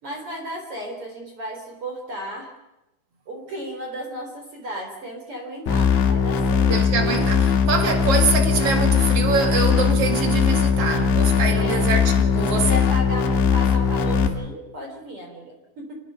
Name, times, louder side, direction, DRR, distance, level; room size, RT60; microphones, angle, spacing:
voice 1, 0.0-2.5 3.3-6.7 7.0-7.1 7.5-7.7 11.4-11.8 12.5-15.9, equal, 30° right, 2 dB, 4.1 m, -34 dB
sound 1, 5.7-14.3, left 6 dB, 70° left, 4.1 m, -20 dB
voice 2, 6.7-12.8, right 4 dB, 50° right, 5 dB, 1.8 m, -24 dB
29.0 x 20.0 x 5.8 m, 0.93 s
omnidirectional pair, 5.5 m